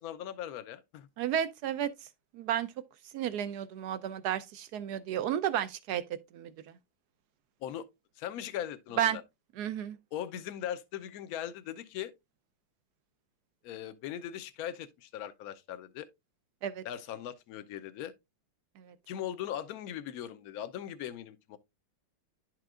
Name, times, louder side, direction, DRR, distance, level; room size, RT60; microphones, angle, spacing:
voice 1, 0.0-1.1 7.6-7.9 8.2-9.2 10.1-12.1 13.6-16.1 16.8-18.1 19.1-21.6, left 10 dB, 65° left, 0.9 m, -39 dB
voice 2, 1.2-1.9 2.3-2.7 3.1-6.0 6.3-6.5 9.0-9.2 9.6-10.0 16.6-16.8 18.9-19.0, right 10 dB, 75° right, 0.9 m, -32 dB
11.0 x 4.5 x 2.4 m
omnidirectional pair, 2.2 m